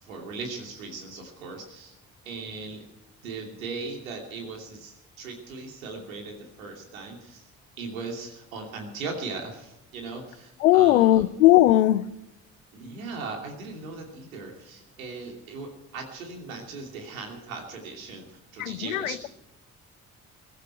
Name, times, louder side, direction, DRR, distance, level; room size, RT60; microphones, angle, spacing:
voice 1, 0.0-2.0 2.2-2.9 3.2-7.5 7.8-11.3 12.7-19.3, right 4 dB, 85° right, 2.8 m, -38 dB
voice 2, 10.6-12.0 18.6-19.1, left 15 dB, 85° left, 0.6 m, -18 dB
22.0 x 12.5 x 4.6 m
figure-of-eight pair, 40°, 40 cm